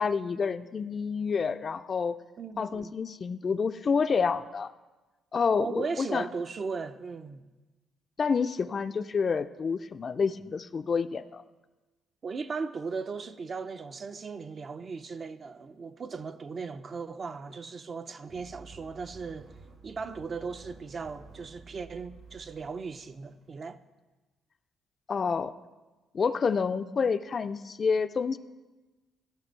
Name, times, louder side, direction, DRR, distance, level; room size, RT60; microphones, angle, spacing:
voice 1, 0.0-2.2 2.6-4.7 5.3-6.2 8.2-11.4 25.1-25.5 26.1-28.4, left 5 dB, 45° left, 0.4 m, -28 dB
voice 2, 2.4-2.9 5.5-7.5 12.2-19.5 19.8-23.8, right 4 dB, 45° right, 0.5 m, -37 dB
sound 1, 18.3-23.5, right 4 dB, 75° right, 3.4 m, -52 dB
14.0 x 5.9 x 4.5 m
cardioid pair, 90°, 0 cm